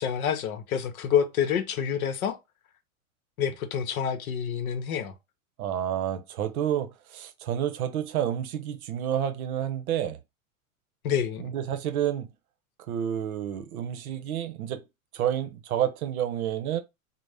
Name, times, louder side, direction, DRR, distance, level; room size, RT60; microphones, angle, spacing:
voice 1, 0.0-2.4 3.4-5.1 11.0-11.5, left 8 dB, 80° left, 0.7 m, -27 dB
voice 2, 5.6-10.2 11.4-12.3 12.9-14.8 15.1-16.8, right 10 dB, 80° right, 0.7 m, -29 dB
2.5 x 2.0 x 3.2 m
hypercardioid pair, 120°, 43 cm